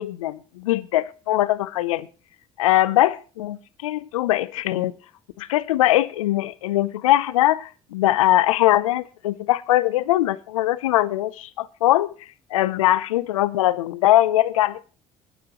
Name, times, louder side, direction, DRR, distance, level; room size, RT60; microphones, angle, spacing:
voice 1, 0.0-2.1 2.6-4.9 5.4-12.1 12.5-14.9, left 15 dB, 90° left, 0.6 m, -21 dB
22.0 x 9.5 x 3.0 m
hypercardioid pair, 60°, 17 cm